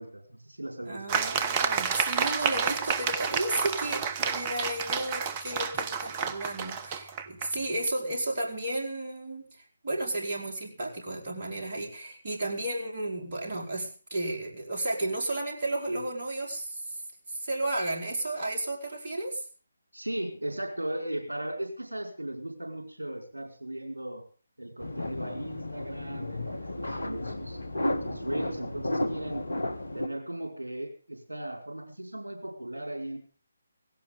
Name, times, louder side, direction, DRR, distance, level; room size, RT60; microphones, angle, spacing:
voice 1, 0.0-1.2 19.9-24.2 24.6-27.6 28.0-29.5 29.9-33.2, right 1 dB, 75° right, 3 dB, 5.1 m, -37 dB
voice 2, 0.9-17.0 17.3-19.4, right 1 dB, 40° right, -1 dB, 4.6 m, -33 dB
sound 1, 1.1-7.5, right 6 dB, 25° right, 1.2 m, -30 dB
sound 2, 24.8-30.1, left 1 dB, 75° left, 1.6 m, -33 dB
17.5 x 17.0 x 3.8 m, 0.38 s
figure-of-eight pair, 145°, 0 cm